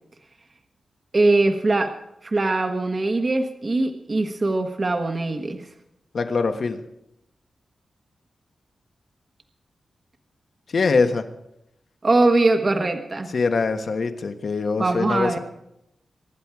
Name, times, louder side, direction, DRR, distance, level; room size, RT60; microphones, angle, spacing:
voice 1, 1.1-1.9 2.2-5.6 12.0-13.3 14.8-15.4, right 2 dB, 35° right, 5 dB, 1.3 m, -21 dB
voice 2, 6.1-6.8 10.7-11.2 13.3-15.4, left 4 dB, 55° left, 7 dB, 1.4 m, -23 dB
24.0 x 10.5 x 4.9 m, 0.84 s
wide cardioid pair, 105°, 0 cm